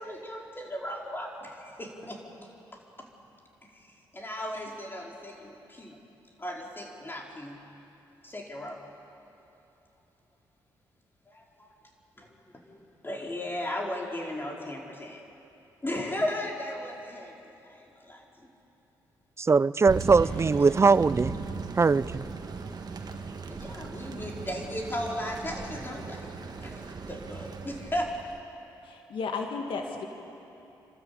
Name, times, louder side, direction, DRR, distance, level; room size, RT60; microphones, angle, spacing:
voice 1, 0.0-2.2 3.0-3.1 3.6-6.0 6.4-7.6 8.2-8.8 11.3-11.7 12.2-12.3 12.6-15.2 15.8-18.5 20.2-20.7 23.5-26.3 26.6-28.3, left 1 dB, 25° left, -1 dB, 4.6 m, -36 dB
voice 2, 19.4-21.4 21.8-22.3, right 4 dB, 30° right, 19 dB, 0.5 m, -21 dB
Thunder, 19.9-28.4, right 4 dB, 50° right, 1.6 m, -38 dB
voice 3, 28.8-30.1, left 4 dB, 75° left, 3 dB, 2.0 m, -33 dB
29.0 x 13.0 x 8.6 m, 2.9 s
supercardioid pair, 55°, 9 cm